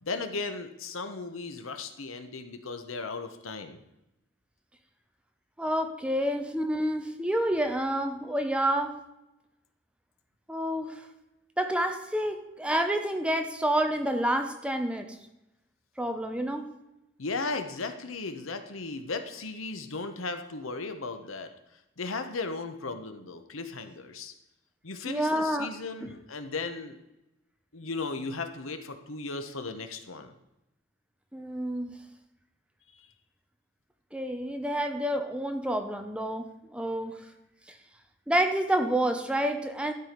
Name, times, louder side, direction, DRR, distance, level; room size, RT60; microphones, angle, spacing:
voice 1, 0.0-3.8 17.2-21.5 22.0-24.3 24.8-27.0 27.7-30.3 32.9-33.0, left 3 dB, 85° left, 8 dB, 1.0 m, -36 dB
voice 2, 5.6-9.0 10.5-11.1 11.6-15.2 16.0-16.7 25.1-25.7 26.0-26.1 31.3-32.0 34.1-37.2 37.7-37.8 38.3-39.9, right 1 dB, 5° right, 6 dB, 0.7 m, -28 dB
12.0 x 4.8 x 5.2 m, 0.91 s
head